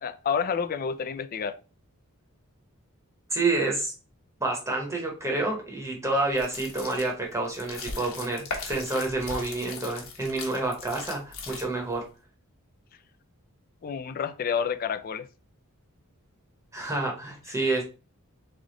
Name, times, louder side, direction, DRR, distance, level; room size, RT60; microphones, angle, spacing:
voice 1, 0.0-1.6 13.8-15.3, left 6 dB, 40° left, 0.4 m, -29 dB
voice 2, 3.3-3.9 4.4-12.1 16.7-17.8, right 2 dB, 15° right, 0.9 m, -28 dB
sound 1, 6.3-12.0, left 4 dB, 70° left, 1.2 m, -39 dB
3.6 x 3.4 x 3.7 m
head